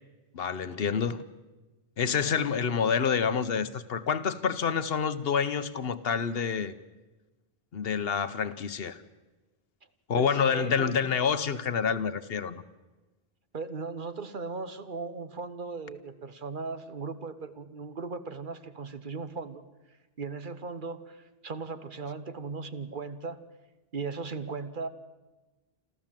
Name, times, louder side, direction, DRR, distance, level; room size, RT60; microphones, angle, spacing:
voice 1, 0.3-1.2 2.0-6.7 7.7-9.0 10.1-12.6, left 6 dB, 70° left, 1.1 m, -28 dB
voice 2, 10.2-11.0 13.5-19.6 20.2-23.4 23.9-24.9, right 4 dB, 55° right, 1.2 m, -37 dB
27.5 x 13.5 x 7.5 m
omnidirectional pair, 1.0 m